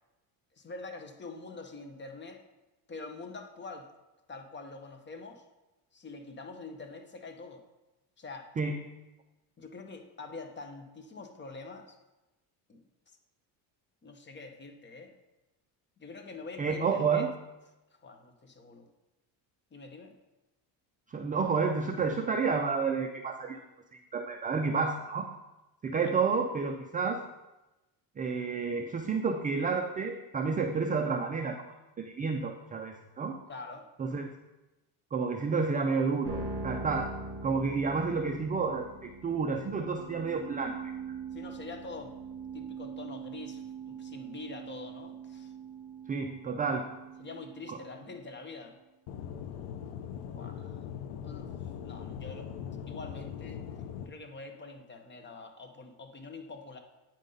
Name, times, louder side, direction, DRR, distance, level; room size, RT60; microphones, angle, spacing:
voice 1, 0.5-2.4 2.9-3.9 4.3-5.4 5.9-7.7 8.2-8.5 9.6-12.0 12.7-12.8 14.0-15.1 16.0-17.3 17.9-18.9 19.7-20.2 33.5-33.9 41.3-42.1 42.5-45.5 47.2-48.7 50.3-50.8 51.2-52.5 52.9-53.6 54.1-56.8, left 3 dB, 25° left, 5 dB, 0.8 m, -45 dB
voice 2, 16.6-17.3 21.1-23.6 24.1-25.3 25.8-27.2 28.2-31.6 32.0-33.4 34.0-34.3 35.1-37.1 37.4-38.9 39.2-40.9 46.1-46.9 47.7-47.8, right 5 dB, 20° right, 4 dB, 0.3 m, -30 dB
sound 1, 36.2-48.6, right 4 dB, 40° right, 2.2 m, -42 dB
Aircraft / Engine, 49.1-54.1, left 8 dB, 75° left, 0.8 m, -41 dB
8.9 x 5.3 x 3.9 m, 1.0 s
cardioid pair, 125°, 48 cm